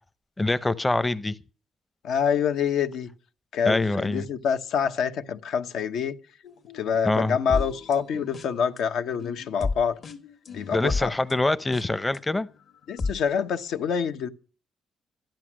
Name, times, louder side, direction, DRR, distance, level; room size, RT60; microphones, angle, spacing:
voice 1, 0.4-1.4 3.7-4.3 7.0-7.4 10.7-12.5, left 2 dB, 15° left, 0.7 m, -24 dB
voice 2, 2.0-3.1 3.5-6.1 6.7-10.0 10.5-11.1 12.9-14.3, left 7 dB, 80° left, 1.2 m, -26 dB
sound 1, 6.4-8.8 9.2-12.2 12.7-13.1, left 4 dB, 50° left, 1.7 m, -33 dB
13.0 x 10.5 x 6.2 m
cardioid pair, 90°, 0 cm